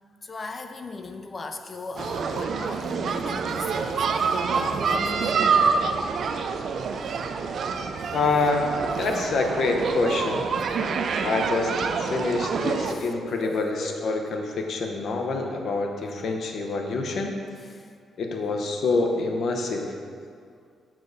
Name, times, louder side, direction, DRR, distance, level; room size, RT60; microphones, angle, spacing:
voice 1, 0.2-5.5 9.1-9.4 12.6-14.1 17.4-17.9 18.3-18.5, left 3 dB, 30° left, 7 dB, 0.4 m, -38 dB
sound 1, 2.0-12.9, right 5 dB, 60° right, 0.4 m, -26 dB
voice 2, 8.1-8.7 9.0-10.5 11.2-17.4 18.2-19.9, left 3 dB, 60° left, 2 dB, 0.9 m, -26 dB
7.3 x 3.8 x 6.5 m, 2.2 s
cardioid pair, 110°, 0 cm